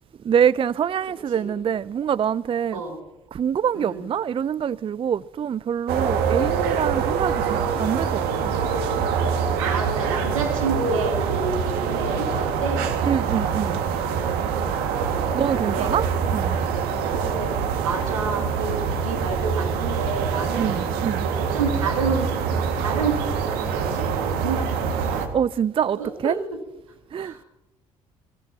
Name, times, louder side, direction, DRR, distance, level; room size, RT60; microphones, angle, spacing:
voice 1, 0.2-2.8 3.3-8.5 13.0-13.8 15.3-16.1 16.3-16.6 20.6-21.3 25.3-26.4 27.1-27.4, right 8 dB, 35° right, 0.4 m, -25 dB
sound 1, 5.9-25.3, right 6 dB, 70° right, 1.9 m, -25 dB
voice 2, 9.6-12.9 14.8-15.4 15.7-15.9 17.0-18.8 19.0-20.8 21.2-22.4 22.7-25.3 26.0-26.4 27.2-27.4, right 4 dB, 90° right, 2.7 m, -29 dB
24.5 x 17.0 x 2.8 m
hypercardioid pair, 50°, 17 cm